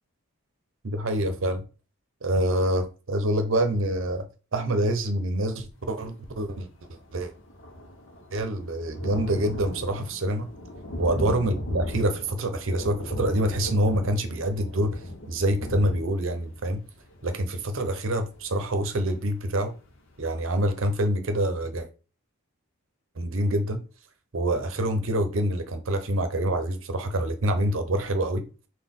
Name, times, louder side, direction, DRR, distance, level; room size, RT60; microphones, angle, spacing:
voice 1, 0.8-1.6 2.2-4.3 4.5-6.7 7.1-7.3 8.3-10.5 11.0-15.0 15.3-16.8 17.2-19.7 20.2-21.9 23.2-23.8 24.3-28.4, right 1 dB, 60° right, 0.7 m, -26 dB
Thunder, 6.5-6.6 6.8-19.4 19.9-20.0 20.3-20.4, left 1 dB, 55° left, 0.7 m, -37 dB
3.9 x 2.2 x 3.6 m
head